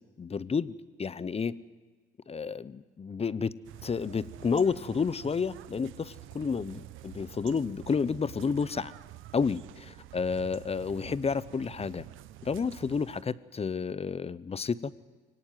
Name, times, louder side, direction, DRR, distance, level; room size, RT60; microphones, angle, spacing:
voice 1, 0.2-0.7 1.0-1.5 2.3-3.5 3.8-8.9 9.3-12.0 12.4-14.9, left 5 dB, 30° left, 19 dB, 0.8 m, -30 dB
sound 1, 3.6-13.2, right 15 dB, 90° right, 0.8 m, -48 dB
23.5 x 17.5 x 9.3 m, 1.4 s
cardioid pair, 90°, 20 cm